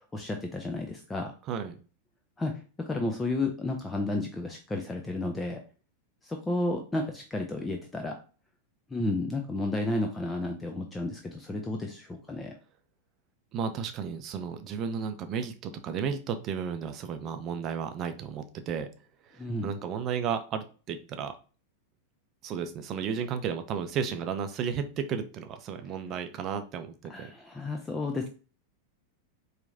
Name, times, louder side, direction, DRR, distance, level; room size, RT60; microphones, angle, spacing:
voice 1, 0.1-1.3 2.4-2.5 2.8-5.6 6.2-8.2 8.9-12.5 19.4-19.7 27.1-28.3, left 2 dB, 10° left, 3 dB, 0.5 m, -32 dB
voice 2, 1.5-1.8 13.5-18.9 19.6-21.3 22.4-27.3, right 7 dB, 35° right, 8 dB, 0.5 m, -33 dB
4.6 x 3.2 x 2.6 m, 0.36 s
figure-of-eight pair, 90°, 0 cm